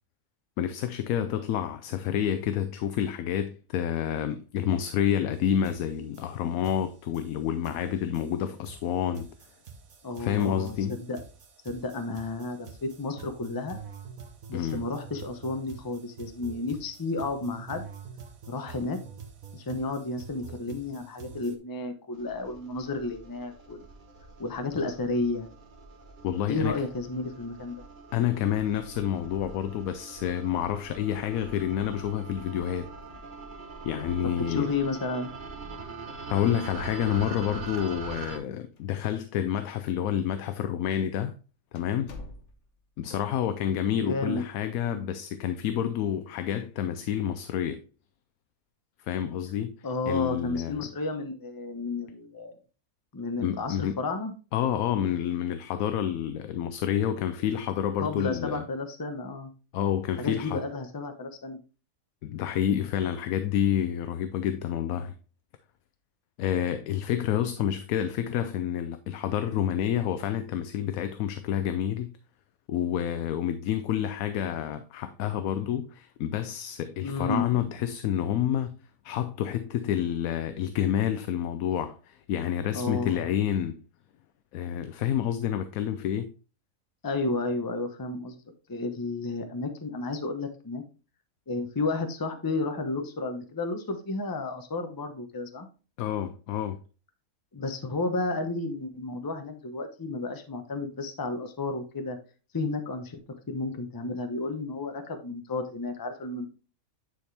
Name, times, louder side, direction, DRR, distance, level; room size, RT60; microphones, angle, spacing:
voice 1, 0.6-9.3 10.2-11.0 14.5-14.9 26.2-26.8 28.1-32.9 33.8-34.7 36.3-41.3 41.7-42.1 43.0-47.8 49.0-49.7 50.1-50.9 53.4-54.0 54.5-58.6 59.7-60.6 62.2-65.2 66.4-72.1 72.7-78.8 79.0-83.8 84.5-86.3 96.0-96.8, left 10 dB, 80° left, 1.0 m, -29 dB
sound 1, 5.3-5.4 5.6-21.6, right 6 dB, 75° right, 1.6 m, -47 dB
voice 2, 10.0-11.2 11.6-13.8 14.5-17.9 18.5-19.0 19.5-23.8 24.4-25.5 26.5-27.8 34.2-35.3 44.0-44.4 49.8-52.6 53.1-54.3 58.0-59.5 60.2-61.6 77.0-77.5 82.7-83.3 87.0-88.4 88.7-90.8 91.5-95.7 97.5-102.2 102.5-103.2 103.5-106.5, left 3 dB, 20° left, 0.7 m, -32 dB
sound 2, 22.1-38.4, right 4 dB, 35° right, 1.2 m, -43 dB
sound 3, 37.9-38.5 38.8-38.9 39.6-39.7 40.5-40.7 41.1-41.2 41.7-42.9, left 3 dB, 60° left, 1.2 m, -46 dB
9.7 x 4.3 x 3.3 m
omnidirectional pair, 1.5 m